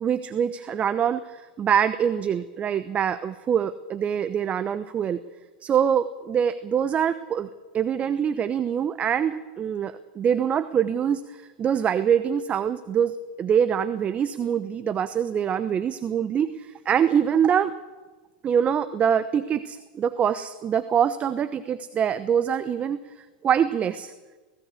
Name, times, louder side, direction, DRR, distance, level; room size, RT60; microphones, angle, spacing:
voice 1, 0.0-5.2 5.6-7.5 7.7-17.7 18.4-23.0 23.4-24.1, right 8 dB, 30° right, 13 dB, 0.9 m, -24 dB
19.5 x 16.5 x 8.4 m, 1.3 s
hypercardioid pair, 110°, 5 cm